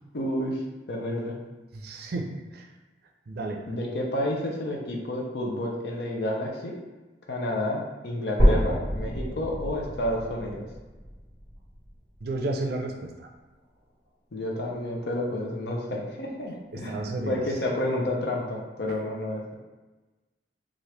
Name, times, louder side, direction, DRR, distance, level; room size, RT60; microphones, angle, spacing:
voice 1, 0.1-0.6 0.9-1.3 3.7-6.8 7.3-10.7 14.3-19.5, left 1 dB, 65° left, -1 dB, 0.6 m, -30 dB
voice 2, 1.7-2.7 3.3-3.6 12.2-13.3 16.7-17.4 18.9-19.0, right 2 dB, 60° right, 2 dB, 0.4 m, -32 dB
sound 1, 8.4-12.4 13.0-13.1 13.6-13.7 14.1-14.2 15.0-15.1, equal, 40° left, 1.3 m, -27 dB
2.9 x 2.4 x 3.3 m, 1.2 s
head